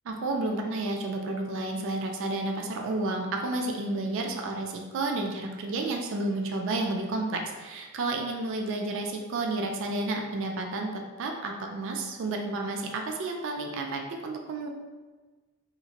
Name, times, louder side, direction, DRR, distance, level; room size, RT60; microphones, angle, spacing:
voice 1, 0.1-14.7, right 2 dB, 65° right, 2 dB, 0.3 m, -31 dB
2.8 x 2.4 x 2.8 m, 1.3 s
head